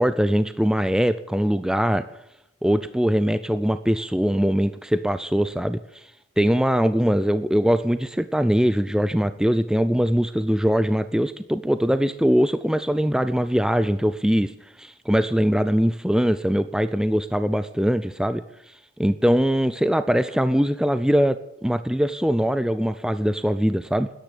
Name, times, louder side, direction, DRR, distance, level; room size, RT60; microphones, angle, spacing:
voice 1, 0.0-2.0 2.6-6.1 6.4-14.5 14.8-24.1, equal, 5° right, 12 dB, 0.4 m, -22 dB
13.0 x 10.5 x 8.3 m, 0.89 s
head